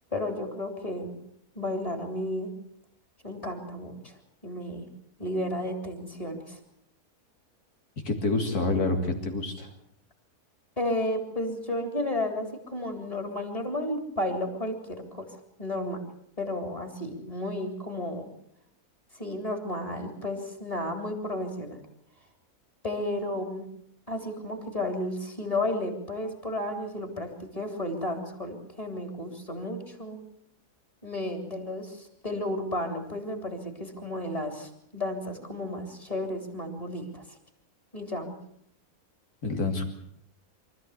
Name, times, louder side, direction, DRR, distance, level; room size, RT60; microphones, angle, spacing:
voice 1, 0.1-1.1 1.5-2.5 3.2-4.2 4.4-4.9 5.2-6.6 10.8-16.0 16.4-18.3 19.1-21.8 22.8-23.7 24.1-30.2 31.0-37.2 37.9-38.3, left 1 dB, 25° left, 5 dB, 3.4 m, -33 dB
voice 2, 8.0-9.7 39.4-39.8, left 3 dB, 85° left, 4 dB, 3.3 m, -27 dB
24.5 x 14.0 x 8.3 m, 0.72 s
omnidirectional pair, 1.6 m